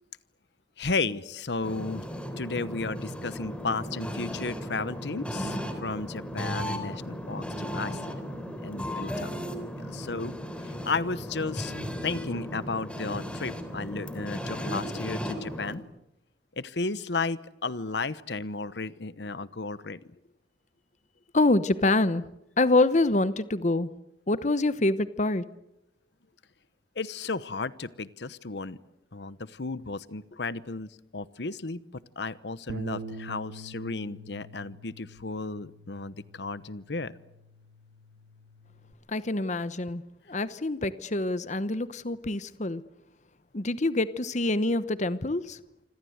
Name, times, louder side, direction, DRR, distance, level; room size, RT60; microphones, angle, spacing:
voice 1, 0.8-2.0 2.4-8.3 8.6-10.3 10.6-11.7 12.0-15.8 16.6-20.0 27.0-28.8 29.1-31.8 32.2-37.1, left 3 dB, 70° left, 1.0 m, -34 dB
sound 1, 1.6-15.8, equal, 5° left, 3.5 m, -36 dB
voice 2, 21.3-22.2 22.6-23.9 24.3-25.4 39.1-40.0 40.3-42.8 43.5-45.6, left 2 dB, 40° left, 1.0 m, -26 dB
Bass guitar, 32.7-38.9, right 2 dB, 90° right, 2.0 m, -44 dB
27.5 x 26.0 x 8.0 m
head